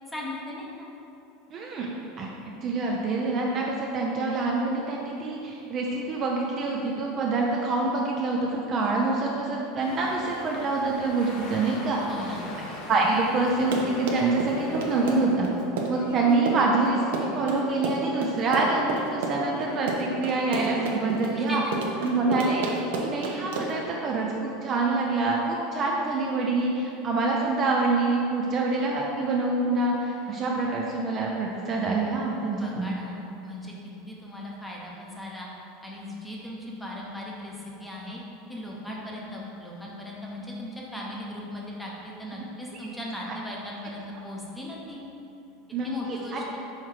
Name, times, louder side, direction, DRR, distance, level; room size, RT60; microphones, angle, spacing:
voice 1, 0.1-0.9 12.0-12.7 21.4-21.6 32.5-33.7 34.1-35.5 35.8-38.2 38.5-45.0 45.8-46.6, left 1 dB, 5° left, -3 dB, 0.8 m, -38 dB
voice 2, 1.5-1.9 2.2-2.3 2.6-12.0 12.9-15.5 15.9-21.6 22.0-32.9 45.7-46.4, right 3 dB, 25° right, -2 dB, 0.5 m, -26 dB
sound 1, 9.8-15.3, left 1 dB, 55° left, 1.3 m, -41 dB
Run, 13.5-23.9, right 3 dB, 80° right, 0.9 m, -31 dB
sound 2, 14.6-23.4, left 2 dB, 75° left, 0.8 m, -44 dB
5.7 x 4.5 x 4.7 m, 2.9 s
supercardioid pair, 170°, 0 cm